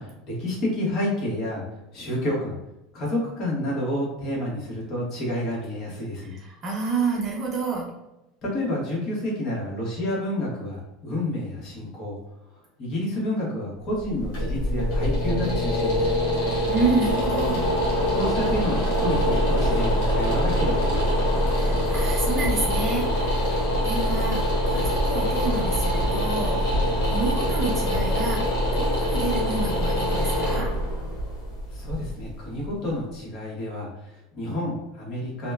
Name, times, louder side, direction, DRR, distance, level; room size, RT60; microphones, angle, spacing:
voice 1, 0.0-2.6 2.9-6.3 8.4-12.2 12.8-16.2 18.1-21.1 31.7-35.5, left 1 dB, 45° left, -4 dB, 1.3 m, -29 dB
voice 2, 6.3-7.9 16.7-17.6 21.5-26.7 27.0-30.7, right 3 dB, 40° right, -3 dB, 0.7 m, -29 dB
sound 1, 13.9-32.9, equal, 70° left, 1.0 m, -24 dB
2.8 x 2.2 x 2.3 m, 0.93 s
supercardioid pair, 105°, 0 cm